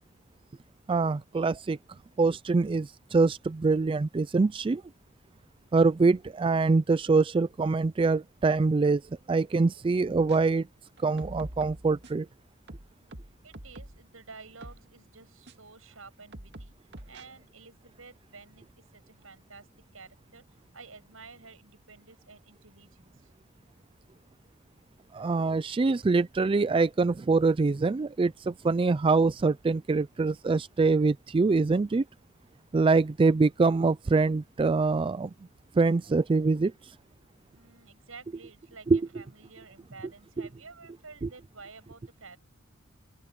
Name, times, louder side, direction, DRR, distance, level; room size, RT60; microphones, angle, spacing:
voice 1, 0.9-1.8 2.2-4.8 5.7-9.0 9.3-10.7 11.0-12.3 25.1-32.0 32.7-35.3 35.7-36.7 38.9-39.0 41.2-41.3, right 3 dB, 25° right, 0.3 m, -24 dB
sound 1, 10.2-10.4 11.0-12.2 12.7-14.1 14.6-14.8 15.5-15.6 16.3-17.2, right 1 dB, 55° right, 2.0 m, -45 dB
voice 2, 13.4-16.8 17.1-19.7 19.9-20.4 20.7-23.3 37.5-42.4, right 4 dB, 80° right, 7.7 m, -51 dB
open air
head